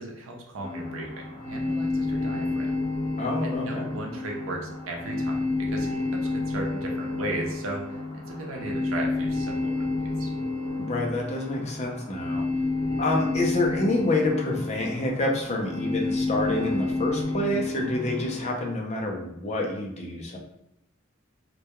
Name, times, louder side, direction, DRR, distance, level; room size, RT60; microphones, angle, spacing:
voice 1, 0.0-2.7 3.4-10.3, right 2 dB, 80° right, 0 dB, 0.6 m, -36 dB
sound 1, 0.6-18.5, left 2 dB, 15° left, 0.9 m, -30 dB
voice 2, 3.2-3.9 10.8-12.4 13.0-20.4, left 2 dB, 35° left, 0 dB, 0.4 m, -27 dB
2.2 x 2.2 x 2.9 m, 0.81 s
head